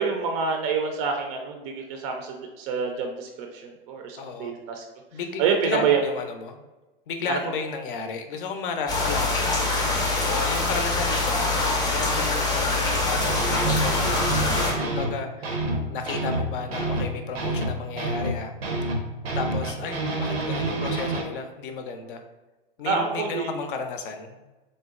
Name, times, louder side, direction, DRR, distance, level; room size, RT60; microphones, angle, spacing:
voice 1, 0.0-4.8 5.4-6.0 7.3-7.4 22.8-23.5, right 5 dB, 40° right, 3 dB, 0.4 m, -27 dB
voice 2, 4.2-4.5 5.1-6.6 7.1-15.5 15.9-18.5 19.3-22.2 22.8-24.4, left 5 dB, 60° left, 6 dB, 0.5 m, -33 dB
sound 1, 8.9-14.7, left 2 dB, 15° left, 0.6 m, -24 dB
sound 2, 13.1-15.1 15.4-21.2, right 2 dB, 90° right, 0.6 m, -28 dB
3.8 x 2.1 x 2.4 m, 1.1 s
hypercardioid pair, 105°, 29 cm